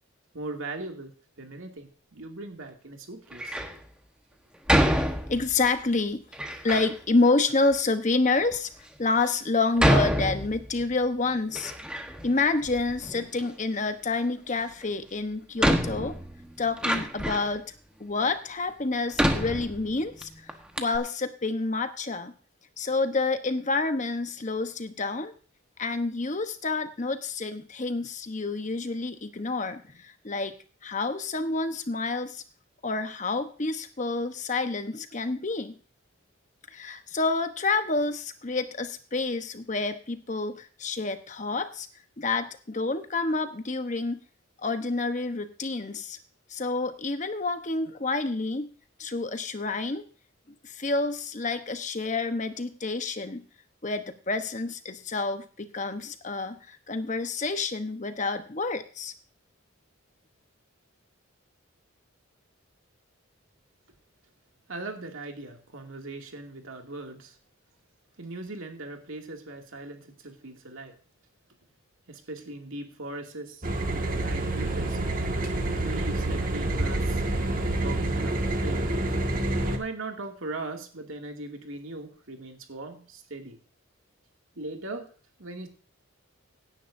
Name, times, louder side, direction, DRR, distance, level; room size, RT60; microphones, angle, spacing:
voice 1, 0.3-1.1 1.4-3.6 64.7-67.4 68.2-71.0 72.1-75.0 75.8-77.2 77.8-78.9 79.6-83.6 84.6-85.1 85.4-85.7, right 2 dB, 70° right, 3 dB, 2.4 m, -39 dB
Door, 3.3-3.8 4.7-5.6 6.3-6.9 7.7-7.8 8.5-8.6 9.8-10.9 11.3-12.3 12.6-13.5 14.8-14.9 15.6-17.6 18.2-18.3 19.1-20.2 20.5-20.6 20.8-21.0, equal, 5° right, 1.2 m, -26 dB
voice 2, 5.3-6.2 6.6-8.7 9.0-11.7 12.2-16.2 16.6-17.6 18.0-22.3 22.8-25.3 25.8-32.4 32.8-35.8 36.7-41.9 42.2-44.2 44.6-46.2 46.5-48.7 49.0-50.0 50.6-53.4 53.8-59.1, left 3 dB, 35° left, 9 dB, 1.0 m, -28 dB
sound 1, 73.6-79.8, right 1 dB, 40° right, 1.8 m, -27 dB
17.5 x 10.0 x 2.7 m, 0.40 s
head